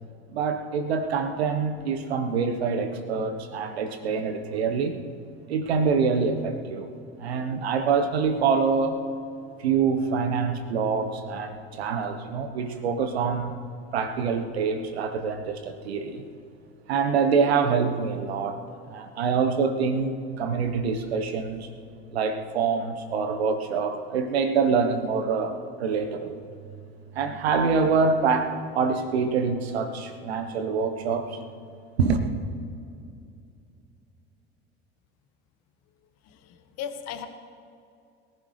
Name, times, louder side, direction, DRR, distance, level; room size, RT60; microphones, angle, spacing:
voice 1, 0.3-5.0 5.5-6.9 7.2-9.0 9.6-13.5 13.9-16.2 16.9-18.6 18.9-21.7 22.1-26.4 27.1-31.4 32.0-32.3, right 5 dB, 75° right, 7 dB, 1.2 m, -25 dB
voice 2, 36.2-37.3, left 8 dB, 55° left, 8 dB, 1.4 m, -37 dB
22.0 x 15.0 x 3.3 m, 2.5 s
figure-of-eight pair, 65°, 32 cm